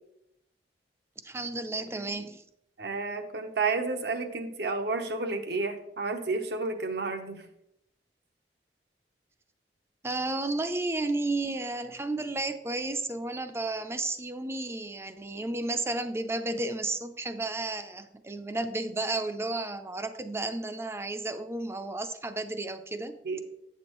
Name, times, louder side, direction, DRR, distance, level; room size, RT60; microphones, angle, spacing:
voice 1, 1.2-2.4 10.0-23.2, right 2 dB, 15° right, 10 dB, 0.5 m, -32 dB
voice 2, 2.8-7.4 23.2-23.4, right 3 dB, 65° right, 6 dB, 0.9 m, -31 dB
8.7 x 6.8 x 3.0 m, 0.78 s
head